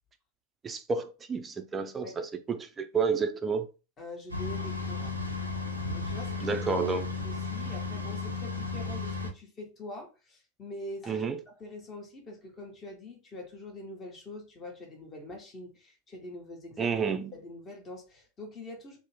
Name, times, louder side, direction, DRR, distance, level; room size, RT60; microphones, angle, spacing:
voice 1, 0.6-3.7 6.4-7.1 11.1-11.4 16.8-17.3, right 5 dB, 20° right, 0.4 m, -30 dB
voice 2, 4.0-5.2 5.9-6.6 6.9-17.0 17.3-19.0, left 1 dB, 25° left, 0.8 m, -44 dB
sound 1, 4.3-9.3, left 3 dB, 85° right, 0.5 m, -34 dB
2.6 x 2.1 x 3.0 m
figure-of-eight pair, 90°, 0 cm